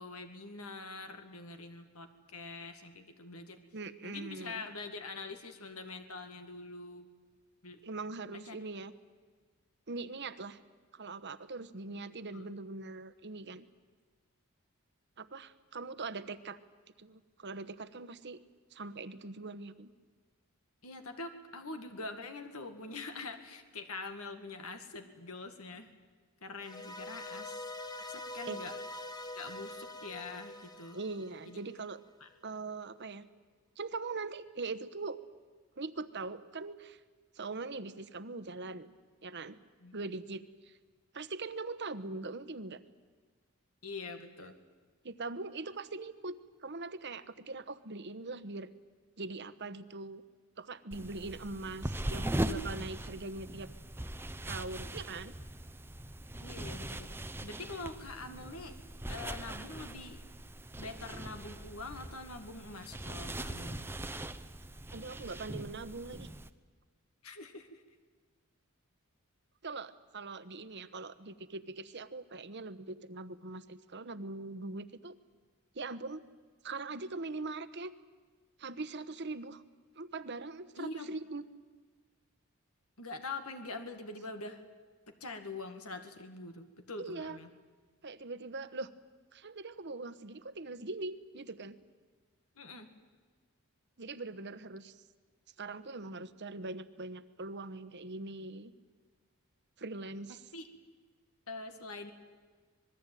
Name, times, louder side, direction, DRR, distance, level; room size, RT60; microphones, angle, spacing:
voice 1, 0.0-3.6 4.0-7.1 7.6-7.8 8.3-8.6 11.9-12.0 12.3-12.5 20.8-25.9 26.4-27.7 28.0-28.7 29.1-31.0 31.5-31.6 32.2-32.3 39.8-40.0 43.8-44.5 56.4-58.7 59.1-60.2 60.8-63.9 67.2-67.8 80.8-81.1 83.0-84.6 85.2-87.5 92.6-92.9 100.5-100.7 101.5-102.1, left 3 dB, 75° left, 7 dB, 2.0 m, -44 dB
voice 2, 3.7-4.7 7.8-8.9 9.9-10.6 10.9-13.7 15.2-16.6 17.0-18.4 18.7-19.9 28.4-28.6 30.9-32.0 32.4-33.3 33.8-35.2 35.8-37.0 37.3-38.9 39.2-39.6 39.9-40.8 41.1-42.8 45.0-46.3 46.6-48.7 49.2-50.2 50.6-53.7 54.5-55.3 64.9-66.3 69.6-75.1 75.7-76.2 76.6-77.9 78.6-79.6 79.9-81.4 87.0-87.4 88.0-88.9 89.3-91.8 94.0-95.0 95.6-98.7 99.8-100.5, right 3 dB, 50° right, 13 dB, 1.1 m, -42 dB
sound 1, 26.6-31.9, left 1 dB, 20° left, 1.2 m, -44 dB
sound 2, 50.9-66.5, right 1 dB, 10° right, 0.8 m, -40 dB
26.0 x 20.5 x 9.2 m, 1.5 s
head